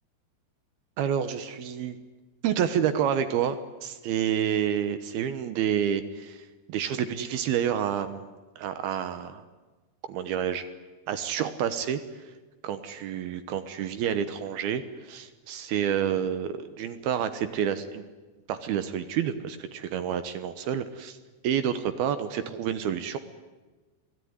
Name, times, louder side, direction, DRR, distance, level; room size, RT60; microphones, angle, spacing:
voice 1, 1.0-2.0 2.4-8.3 8.6-9.4 10.1-10.6 11.1-12.0 12.6-18.0 18.5-21.2 21.4-23.2, right 9 dB, 70° right, 11 dB, 2.8 m, -29 dB
27.0 x 18.0 x 9.6 m, 1.2 s
omnidirectional pair, 4.9 m